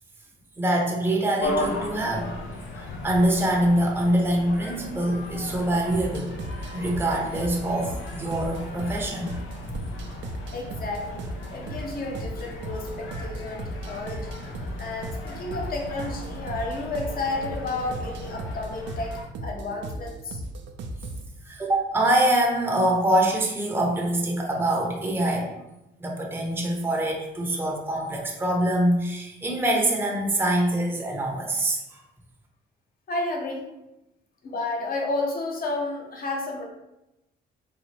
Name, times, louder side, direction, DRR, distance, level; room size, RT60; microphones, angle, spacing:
voice 1, 0.6-2.3 3.0-6.3 6.7-9.3 21.4-25.5 26.0-32.0, right 1 dB, 10° right, -1 dB, 0.7 m, -24 dB
sound 1, 1.4-19.2, left 2 dB, 80° left, 0.6 m, -37 dB
sound 2, 5.9-21.3, right 1 dB, 65° right, 0.5 m, -37 dB
voice 2, 10.5-14.3 14.8-20.4 33.1-33.7 34.4-36.6, left 2 dB, 50° left, 0 dB, 0.9 m, -31 dB
4.0 x 2.3 x 3.1 m, 0.93 s
cardioid pair, 90°, 20 cm